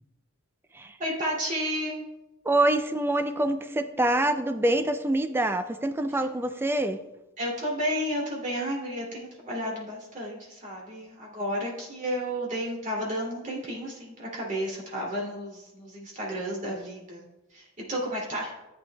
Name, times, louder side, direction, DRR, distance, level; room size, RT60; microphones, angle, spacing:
voice 1, 1.0-2.0 7.4-17.2 17.5-18.5, equal, 35° right, -3 dB, 2.5 m, -32 dB
voice 2, 2.5-7.0, right 1 dB, 10° right, 9 dB, 0.3 m, -25 dB
13.5 x 8.6 x 2.2 m, 1.0 s
head